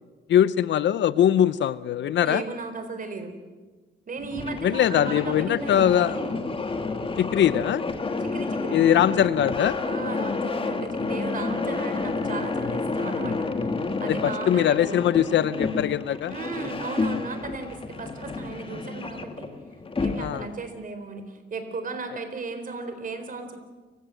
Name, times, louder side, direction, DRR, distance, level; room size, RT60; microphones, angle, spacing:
voice 1, 0.3-2.4 4.6-6.2 7.2-7.8 8.7-9.8 14.0-16.3 20.2-20.5, left 10 dB, 65° left, 16 dB, 0.8 m, -21 dB
voice 2, 2.2-3.4 4.1-6.3 8.2-8.8 9.8-15.1 16.3-19.5 20.0-23.6, right 3 dB, 45° right, 8 dB, 4.2 m, -36 dB
sound 1, 4.2-20.5, left 3 dB, 25° left, 2.1 m, -30 dB
29.5 x 16.5 x 7.9 m, 1.4 s
cardioid pair, 90°, 20 cm